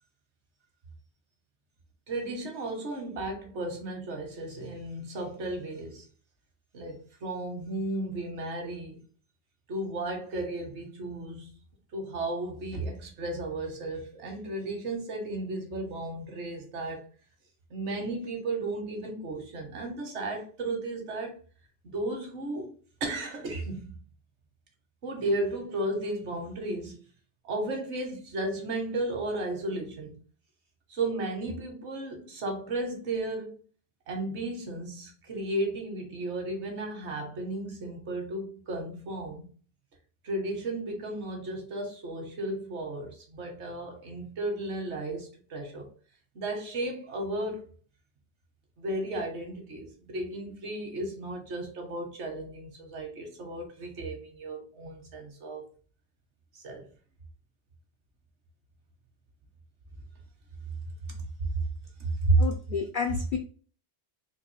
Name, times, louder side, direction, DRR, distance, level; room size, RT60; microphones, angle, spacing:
voice 1, 2.1-6.1 6.7-9.0 9.7-11.5 11.9-17.0 17.7-21.4 21.8-22.7 23.0-24.0 25.0-27.0 27.4-30.2 30.9-33.6 34.1-39.5 40.2-45.9 46.3-47.6 48.8-55.6 56.5-56.9 61.1-61.2 62.0-62.4, right 2 dB, 75° right, 1.3 m, -34 dB
voice 2, 62.4-63.4, left 6 dB, 60° left, 0.6 m, -30 dB
3.7 x 2.6 x 3.1 m
omnidirectional pair, 1.2 m